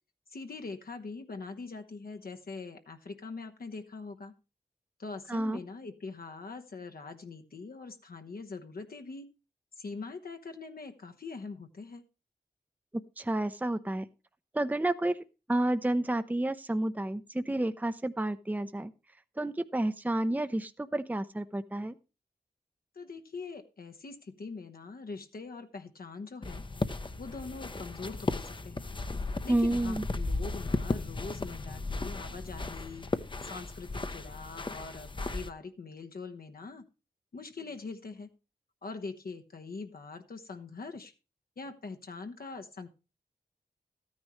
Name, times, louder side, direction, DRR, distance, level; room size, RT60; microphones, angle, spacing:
voice 1, 0.3-4.3 5.0-9.3 9.8-12.0 22.9-26.6 27.2-28.9 29.4-33.1 33.4-36.8 37.3-38.3 38.8-41.1 41.6-42.9, left 4 dB, 65° left, 5 dB, 1.1 m, -43 dB
voice 2, 5.3-5.6 12.9-14.0 14.5-15.2 15.5-18.9 19.4-21.9 29.5-30.1, right 1 dB, 10° right, 11 dB, 0.7 m, -30 dB
sound 1, 26.4-35.5, left 3 dB, 30° left, 0.8 m, -35 dB
13.5 x 9.7 x 3.1 m, 0.30 s
cardioid pair, 50°, 17 cm